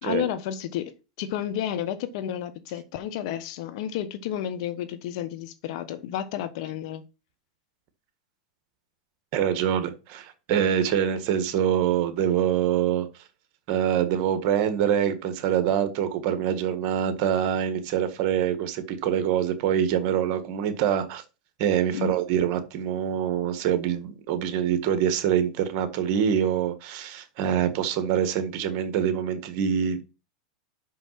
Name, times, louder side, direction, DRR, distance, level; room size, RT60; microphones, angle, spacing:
voice 1, 0.0-7.0 21.9-22.2, left 10 dB, 60° left, 1.2 m, -31 dB
voice 2, 9.3-13.1 13.7-21.2 21.6-30.0, right 9 dB, 50° right, 1.6 m, -25 dB
6.0 x 5.7 x 5.7 m
hypercardioid pair, 115°, 3 cm